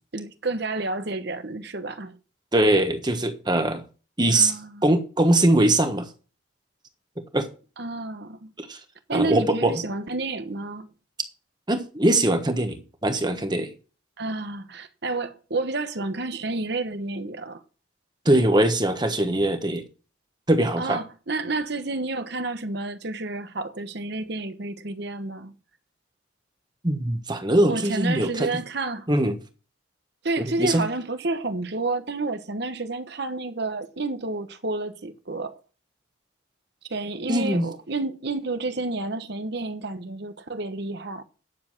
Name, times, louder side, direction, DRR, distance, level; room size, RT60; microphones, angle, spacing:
voice 1, 0.1-2.2 4.3-5.0 7.8-8.5 9.1-10.9 14.2-17.6 20.8-25.5 27.7-29.1 30.2-35.6 36.9-41.2, right 3 dB, 55° right, 1.1 m, -30 dB
voice 2, 2.5-3.8 4.2-4.5 4.8-6.1 7.3-7.5 8.6-8.8 9.1-9.8 11.7-13.7 18.2-19.8 20.5-21.0 26.8-28.5 29.1-29.4 30.4-30.8 37.3-37.6, right 1 dB, 20° right, 1.3 m, -22 dB
10.0 x 7.1 x 5.9 m
head